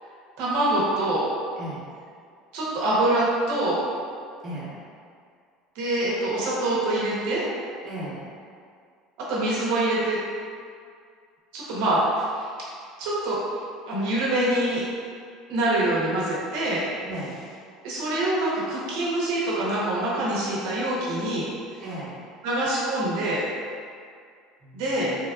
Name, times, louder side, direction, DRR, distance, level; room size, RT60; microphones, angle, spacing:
voice 1, 0.4-1.3 2.5-3.8 5.8-7.5 9.3-10.2 11.5-12.5 13.0-13.3 13.9-14.9 15.5-16.8 17.8-21.5 22.4-23.5 24.7-25.1, right 1 dB, 75° right, -6 dB, 0.8 m, -25 dB
voice 2, 1.6-1.9 4.4-4.7 7.8-8.3 17.0-17.4 21.8-22.2 24.6-25.2, right 1 dB, 35° right, -9 dB, 1.0 m, -36 dB
3.3 x 2.3 x 2.4 m, 2.2 s
cardioid pair, 145°, 0 cm